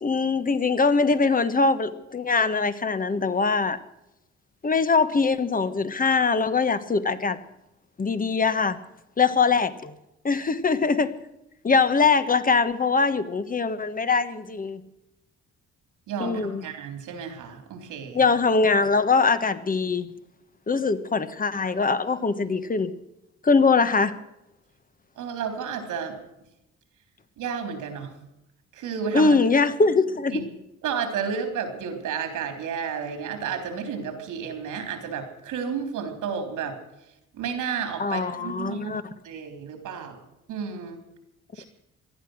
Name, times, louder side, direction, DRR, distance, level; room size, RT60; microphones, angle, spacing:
voice 1, 0.0-3.8 4.6-7.4 8.0-8.8 9.2-9.9 10.2-11.1 11.6-14.8 16.2-16.6 18.1-20.1 20.7-22.9 23.4-24.1 29.1-30.4 38.0-39.0, left 4 dB, 30° left, 12 dB, 1.3 m, -22 dB
voice 2, 16.1-18.2 25.2-26.2 27.4-28.1 28.7-29.4 30.3-30.4 30.8-36.8 37.3-38.9 39.2-40.2 40.5-41.0 41.5-41.7, right 6 dB, 85° right, 6 dB, 3.6 m, -32 dB
18.5 x 12.0 x 6.4 m, 0.88 s
cardioid pair, 90°, 30 cm